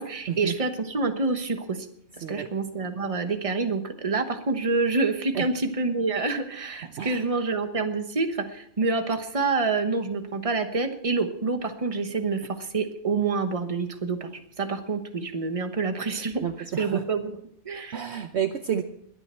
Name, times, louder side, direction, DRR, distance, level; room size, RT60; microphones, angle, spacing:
voice 1, 0.0-1.9 2.2-16.5 16.8-17.3 17.6-18.0, right 4 dB, 25° right, 7 dB, 1.2 m, -27 dB
voice 2, 16.4-17.0 17.9-18.8, right 8 dB, 60° right, 8 dB, 1.0 m, -30 dB
21.5 x 9.5 x 4.4 m, 0.70 s
omnidirectional pair, 1.4 m